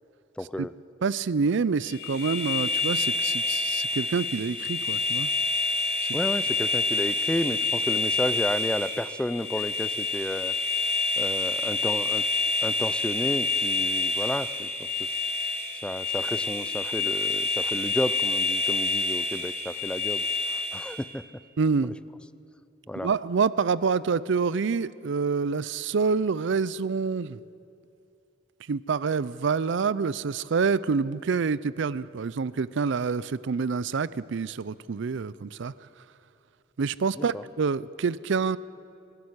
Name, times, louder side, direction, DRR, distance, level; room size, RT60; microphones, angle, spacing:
voice 1, 0.4-0.7 6.1-10.5 11.2-12.3 12.6-14.7 15.0-15.1 15.8-20.2 20.5-21.2 22.9-23.1 37.2-37.4, left 1 dB, 5° left, 15 dB, 0.4 m, -32 dB
voice 2, 1.0-5.3 6.0-6.2 21.6-21.9 23.0-27.4 28.7-35.7 36.8-38.6, right 5 dB, 65° right, 19 dB, 0.5 m, -27 dB
sound 1, 1.8-21.1, left 3 dB, 55° left, 2.3 m, -28 dB
22.0 x 13.0 x 9.7 m, 2.6 s
head